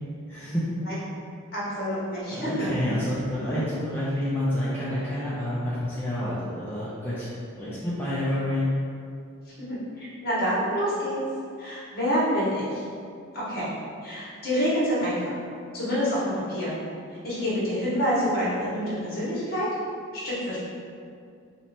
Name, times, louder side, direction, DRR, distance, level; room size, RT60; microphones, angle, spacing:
voice 1, 0.3-0.6 2.3-7.3 7.6-8.7, left 1 dB, 10° left, -10 dB, 0.5 m, -28 dB
voice 2, 1.5-2.7 9.6-11.2 11.6-12.8 13.3-13.7 14.0-15.2 15.7-16.8 17.2-19.7 20.1-20.6, equal, 45° left, -8 dB, 1.3 m, -27 dB
3.1 x 2.9 x 4.2 m, 2.4 s
head